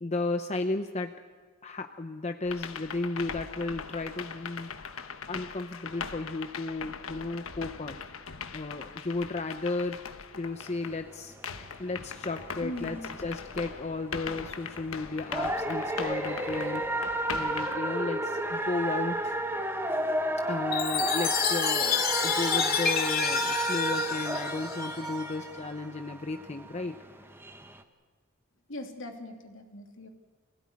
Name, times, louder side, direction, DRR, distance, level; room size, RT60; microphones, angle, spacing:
voice 1, 0.0-1.2 1.6-4.7 5.3-8.0 8.5-10.0 10.4-11.3 11.8-19.4 20.5-27.0, left 3 dB, 35° left, 7 dB, 0.8 m, -34 dB
sound 1, 2.5-11.1 11.4-17.8, left 6 dB, 85° left, 1.2 m, -40 dB
sound 2, 10.6-27.8, right 1 dB, 10° right, 1.3 m, -32 dB
voice 2, 12.6-13.1 28.7-30.1, left 1 dB, 70° left, 3 dB, 3.1 m, -40 dB
Chime, 20.7-25.3, left 7 dB, 50° left, 2.9 m, -29 dB
25.5 x 16.5 x 9.8 m, 1.5 s
head